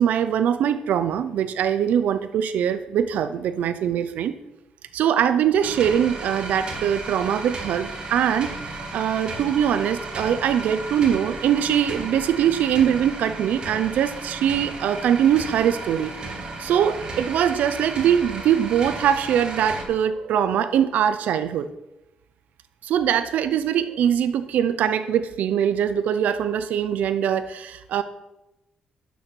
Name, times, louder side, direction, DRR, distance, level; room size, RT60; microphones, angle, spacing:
voice 1, 0.0-4.3 4.9-16.1 16.6-21.7 22.8-28.0, right 9 dB, 70° right, 11 dB, 0.6 m, -22 dB
sound 1, 5.6-19.8, right 3 dB, 35° right, 1.9 m, -34 dB
12.0 x 6.3 x 6.2 m, 0.95 s
cardioid pair, 180°, 3 cm